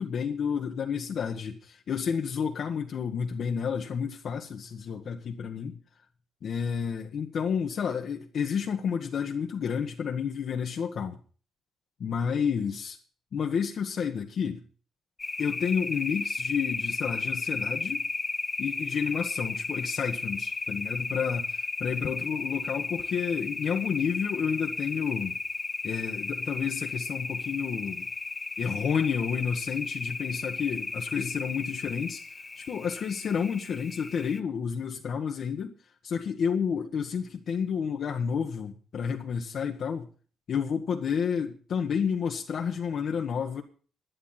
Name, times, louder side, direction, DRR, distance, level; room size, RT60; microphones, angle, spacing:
voice 1, 0.0-5.8 6.4-11.2 12.0-13.0 13.3-14.6 15.4-18.0 18.6-25.4 25.8-28.1 28.6-32.2 32.6-35.7 36.0-40.1 40.5-43.6, left 7 dB, 60° left, 1.5 m, -30 dB
sound 1, 15.2-34.4, left 3 dB, 25° left, 0.8 m, -34 dB
11.5 x 11.0 x 5.8 m
cardioid pair, 90°, 0 cm